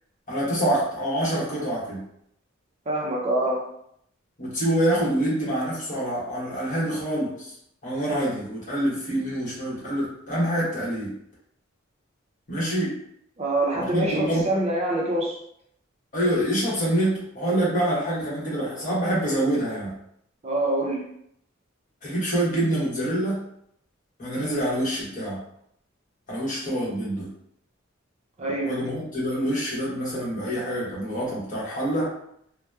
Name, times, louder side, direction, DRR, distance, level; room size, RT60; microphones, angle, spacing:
voice 1, 0.3-2.0 4.4-7.5 7.8-11.1 12.5-13.0 13.7-14.5 16.1-19.9 22.0-23.4 24.2-25.4 26.3-27.3 28.6-32.1, right 1 dB, 40° left, -7 dB, 1.1 m, -26 dB
voice 2, 2.9-3.6 13.4-15.4 20.4-21.0 28.4-28.8, right 1 dB, 35° right, -3 dB, 0.5 m, -25 dB
2.8 x 2.1 x 2.2 m, 0.72 s
head